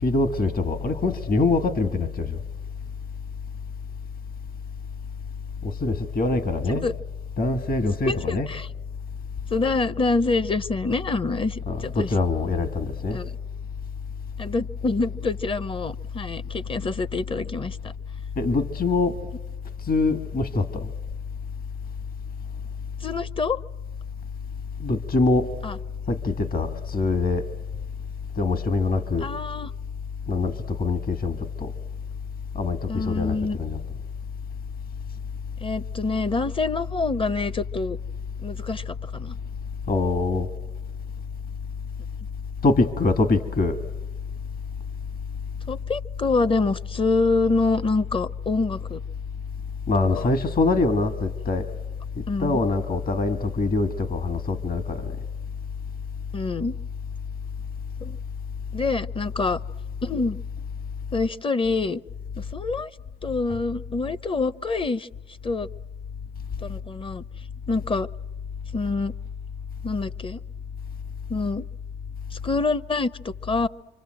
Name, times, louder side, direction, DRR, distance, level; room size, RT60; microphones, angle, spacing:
voice 1, 0.0-2.4 5.6-6.9 7.4-8.5 11.7-13.2 18.4-19.1 19.8-20.9 24.8-25.5 26.1-27.5 28.4-29.3 30.3-31.7 32.6-33.8 39.9-40.5 42.6-43.8 49.9-51.7 52.2-55.2, left 3 dB, 45° left, 1.8 m, -24 dB
voice 2, 7.8-8.7 9.5-12.1 13.1-13.4 14.4-17.9 23.0-23.6 25.6-25.8 29.2-29.7 32.9-33.6 35.6-38.0 38.4-39.4 45.7-49.0 50.1-50.3 52.3-52.6 56.3-56.8 58.0-58.2 58.7-59.6 60.0-60.4 61.1-62.0 62.4-62.9 63.2-65.1 65.4-65.7 66.6-67.2 67.7-68.1 68.7-69.1 69.8-70.4 71.3-71.7 72.3-73.7, left 3 dB, 25° left, 0.8 m, -26 dB
27.0 x 25.0 x 7.7 m
cardioid pair, 90°, 20 cm